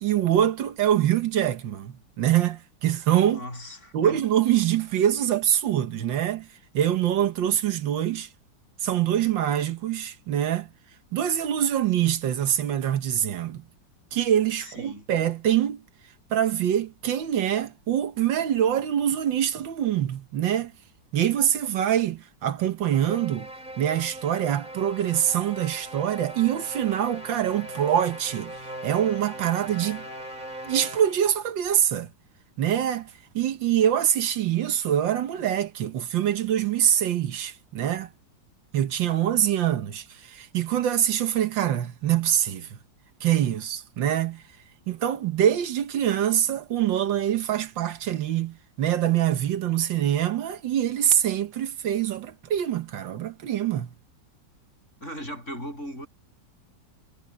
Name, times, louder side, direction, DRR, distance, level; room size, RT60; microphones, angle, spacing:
voice 1, 0.0-3.4 3.9-6.5 6.7-8.3 8.8-10.7 11.1-13.6 14.1-15.8 16.3-20.7 21.1-23.5 23.8-28.6 28.8-30.0 30.7-32.1 32.6-38.1 38.7-42.7 43.2-44.4 44.9-53.9, right 10 dB, 85° right, 1.8 m, -24 dB
voice 2, 3.3-4.2 14.6-15.0 55.0-56.1, equal, 40° left, 8.5 m, -38 dB
sound 1, 22.9-31.4, right 1 dB, 25° right, 4.3 m, -39 dB
omnidirectional pair, 2.0 m